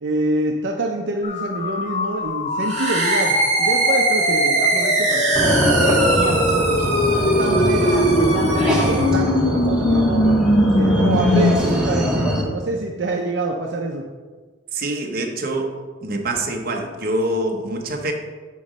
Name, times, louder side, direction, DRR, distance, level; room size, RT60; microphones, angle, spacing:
voice 1, 0.0-6.8 7.2-10.4 10.7-14.1, right 2 dB, 75° right, 1 dB, 0.6 m, -26 dB
sound 1, 1.2-11.6, left 1 dB, 40° left, 0.6 m, -21 dB
sound 2, 2.6-9.2, right 2 dB, 40° right, 2.5 m, -22 dB
sound 3, 5.4-12.4, right 1 dB, 5° right, 1.5 m, -22 dB
voice 2, 14.7-15.7 16.0-18.1, right 1 dB, 55° right, 2 dB, 1.1 m, -25 dB
9.3 x 3.1 x 6.4 m, 1.4 s
head